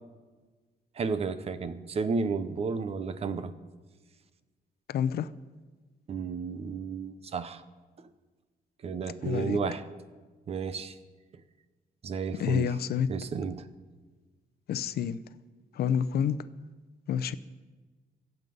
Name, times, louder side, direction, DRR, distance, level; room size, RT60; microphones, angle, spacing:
voice 1, 1.0-3.5 6.1-7.6 8.8-9.8 10.5-10.9 12.0-12.8 13.1-13.6, right 5 dB, 40° right, 0.8 m, -32 dB
voice 2, 4.9-5.3 9.2-9.6 12.4-13.1 14.7-15.2 15.7-16.4 17.1-17.3, left 8 dB, 80° left, 0.6 m, -28 dB
23.5 x 8.1 x 5.4 m
wide cardioid pair, 175°, 16 cm